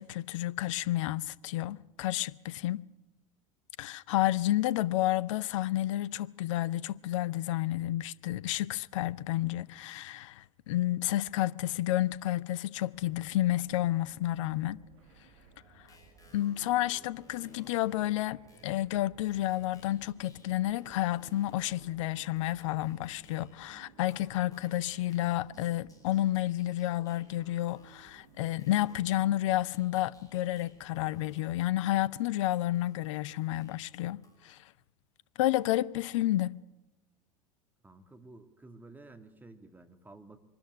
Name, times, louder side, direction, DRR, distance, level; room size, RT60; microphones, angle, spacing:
voice 1, 0.0-2.9 3.8-14.8 16.3-34.6 35.4-36.6, left 14 dB, 60° left, 0.7 m, -30 dB
sound 1, 12.9-32.1, right 5 dB, 60° right, 2.7 m, -59 dB
sound 2, 15.6-23.7 24.1-34.4, left 2 dB, 20° left, 5.5 m, -63 dB
voice 2, 37.8-40.4, right 2 dB, 10° right, 2.1 m, -52 dB
24.5 x 13.0 x 10.0 m
figure-of-eight pair, 75°, 18 cm